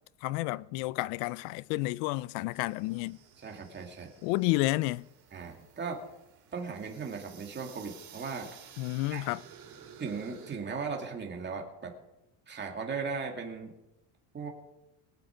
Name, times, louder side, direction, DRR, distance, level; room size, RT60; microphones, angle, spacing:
voice 1, 0.2-3.2 4.2-5.1 8.8-9.4, left 19 dB, 85° left, 0.6 m, -30 dB
sound 1, 2.5-10.6, right 8 dB, 50° right, 4.1 m, -53 dB
voice 2, 3.4-4.1 5.3-6.0 6.5-8.5 9.1-9.2 10.0-11.9 12.5-13.7 14.3-14.5, right 5 dB, 20° right, 2.3 m, -37 dB
23.0 x 7.9 x 5.1 m
cardioid pair, 150°, 47 cm